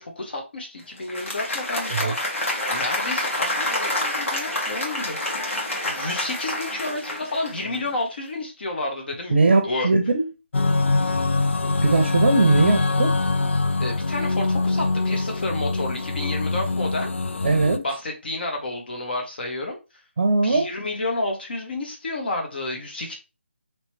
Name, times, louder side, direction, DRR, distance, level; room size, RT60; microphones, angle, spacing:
voice 1, 0.0-5.2 5.8-9.9 13.8-17.1 17.8-19.8 20.4-23.1, left 2 dB, 50° left, 1.3 m, -30 dB
Applause, 1.0-7.9, left 1 dB, 90° left, 1.7 m, -28 dB
voice 2, 9.3-10.3 11.8-13.1 17.4-17.8 20.2-20.7, right 3 dB, 50° right, 0.6 m, -20 dB
sound 1, 10.5-17.8, left 3 dB, 65° left, 0.4 m, -23 dB
3.1 x 3.0 x 3.1 m
figure-of-eight pair, 165°, 7 cm